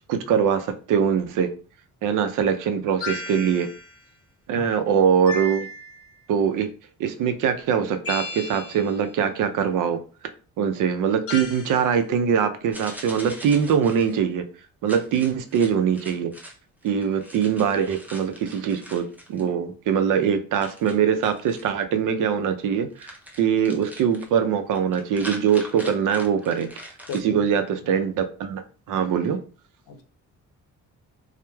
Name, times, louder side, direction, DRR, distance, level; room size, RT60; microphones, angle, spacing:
voice 1, 0.1-1.5 2.0-3.7 4.5-5.7 6.3-6.7 7.0-10.0 10.6-14.4 14.8-16.3 16.8-26.7 27.2-28.6 28.9-29.4, right 7 dB, 70° right, 9 dB, 0.5 m, -22 dB
sound 1, 3.0-4.0 5.3-6.2 8.0-9.0 11.3-11.8, left 3 dB, 45° left, 0.9 m, -34 dB
voice 2, 4.5-4.7 27.1-27.4 27.8-27.9 29.9-30.0, left 5 dB, 80° left, 5 dB, 0.6 m, -36 dB
sound 2, 12.7-14.2 14.9-16.5 16.8-19.4 20.6-21.7 23.0-24.3 24.7-27.2, equal, 5° right, 0.4 m, -41 dB
3.0 x 2.0 x 2.2 m, 0.38 s
cardioid pair, 95°, 32 cm